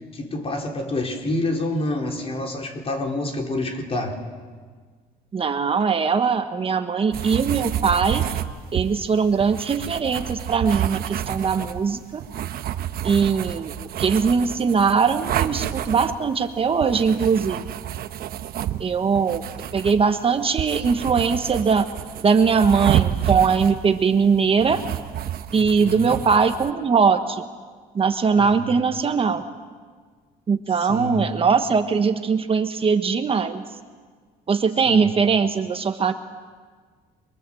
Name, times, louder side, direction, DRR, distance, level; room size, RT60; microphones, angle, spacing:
voice 1, 0.0-4.2 25.5-26.2 28.4-28.8 30.9-31.3 34.9-35.1, left 1 dB, 35° left, 2 dB, 4.4 m, -28 dB
voice 2, 5.3-8.3 8.7-12.2 13.0-13.7 14.0-17.6 18.8-19.4 19.7-21.8 22.2-24.8 25.5-27.4 27.9-29.4 30.5-33.6 34.5-36.1, right 5 dB, 35° right, 8 dB, 1.3 m, -21 dB
sound 1, 7.1-26.7, right 11 dB, 65° right, 1.2 m, -30 dB
27.5 x 23.0 x 7.8 m, 1.6 s
cardioid pair, 110°, 17 cm